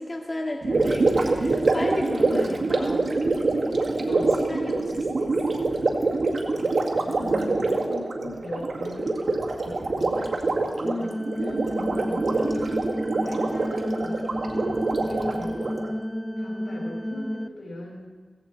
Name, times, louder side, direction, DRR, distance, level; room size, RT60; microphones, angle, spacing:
voice 1, 0.0-3.1 3.6-5.7 7.2-7.6 10.8-12.0, left 1 dB, 30° left, -2 dB, 2.3 m, -34 dB
Gurgling, 0.6-15.9, right 3 dB, 75° right, 2.0 m, -25 dB
voice 2, 2.0-3.0 4.1-4.3 6.5-11.1 12.0-12.8 13.1-14.2 15.0-15.8 16.4-18.1, left 1 dB, 90° left, -1 dB, 5.2 m, -38 dB
sound 1, 11.0-17.5, equal, 5° left, 0.4 m, -31 dB
16.5 x 16.5 x 4.2 m, 1.4 s
wide cardioid pair, 85°, 0 cm